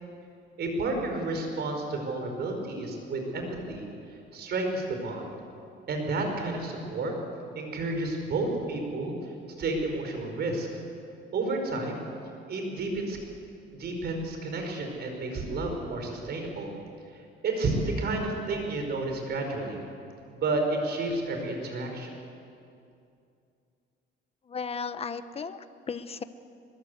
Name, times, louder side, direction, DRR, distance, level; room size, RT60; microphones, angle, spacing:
voice 1, 0.6-3.9 4.3-5.3 5.9-7.1 7.5-9.1 9.6-10.7 11.3-12.0 12.5-13.2 13.7-16.7 17.1-19.8 20.3-22.1, right 2 dB, 55° right, 3 dB, 5.0 m, -31 dB
voice 2, 24.5-26.2, left 5 dB, 30° left, 11 dB, 1.1 m, -35 dB
25.0 x 22.0 x 8.1 m, 2.5 s
cardioid pair, 130°, 21 cm